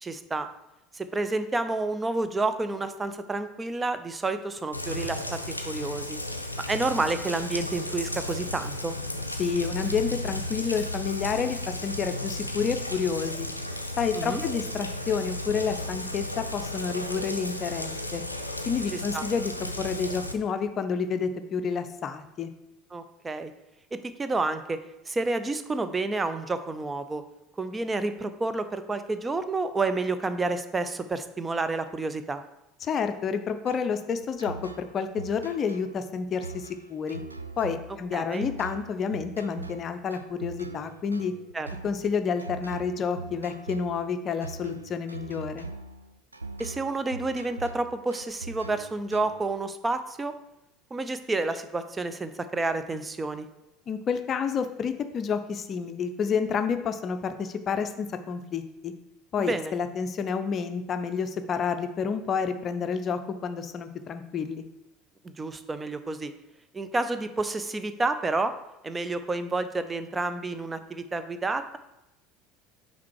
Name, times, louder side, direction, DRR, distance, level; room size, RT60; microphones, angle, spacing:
voice 1, 0.0-0.5 0.9-5.4 5.7-6.2 6.7-9.0 14.1-14.4 18.9-19.2 22.9-23.5 23.9-24.8 25.1-27.2 27.6-32.4 38.1-38.5 41.5-41.7 46.6-50.3 50.9-53.5 59.4-59.7 65.2-66.3 66.7-68.5 68.8-71.8, right 3 dB, 20° right, 10 dB, 0.5 m, -29 dB
Rain, 4.7-20.3, left 1 dB, 90° left, 0.4 m, -34 dB
voice 2, 9.4-13.5 14.0-18.2 18.7-22.5 32.8-37.2 37.6-41.3 41.8-45.7 53.9-58.9 59.3-64.6, left 6 dB, 35° left, 9 dB, 0.5 m, -29 dB
sound 1, 33.7-49.5, right 3 dB, 85° right, 0.3 m, -41 dB
5.9 x 4.4 x 4.6 m, 0.92 s
figure-of-eight pair, 70°, 0 cm